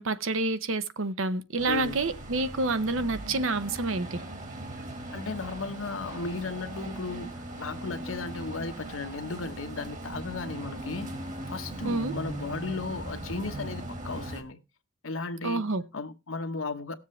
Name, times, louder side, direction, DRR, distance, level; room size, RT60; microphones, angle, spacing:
voice 1, 0.0-4.2 11.8-12.1 15.4-15.8, right 2 dB, 80° right, 0.8 m, -28 dB
voice 2, 1.6-2.1 5.1-11.2 11.5-14.6 15.0-15.6 15.9-17.0, left 3 dB, 80° left, 1.0 m, -35 dB
sound 1, 1.6-14.4, right 1 dB, 40° right, 1.8 m, -39 dB
18.5 x 7.4 x 3.2 m
head